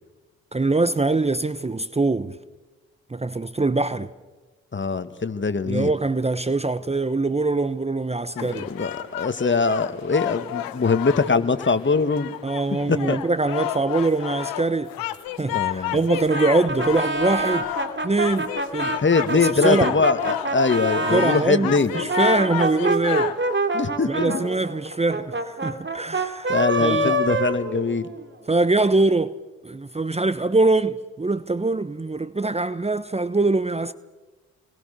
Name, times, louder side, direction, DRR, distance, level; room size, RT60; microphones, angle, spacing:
voice 1, 0.5-2.4 3.1-4.1 5.7-8.7 12.4-14.9 15.4-17.7 18.0-19.0 19.4-20.0 21.1-23.3 24.1-27.3 28.5-29.4 29.6-33.9, right 3 dB, 20° right, 1.0 m, -23 dB
voice 2, 4.7-5.9 8.4-12.3 12.9-13.2 15.5-16.0 18.9-21.9 23.7-24.4 26.5-28.1, left 4 dB, 35° left, 1.9 m, -22 dB
sound 1, 8.4-23.5, left 13 dB, 80° left, 1.2 m, -31 dB
Brass instrument, 16.3-21.5 21.9-28.2, right 2 dB, 35° right, 3.0 m, -26 dB
30.0 x 22.0 x 6.8 m
hypercardioid pair, 40°, 34 cm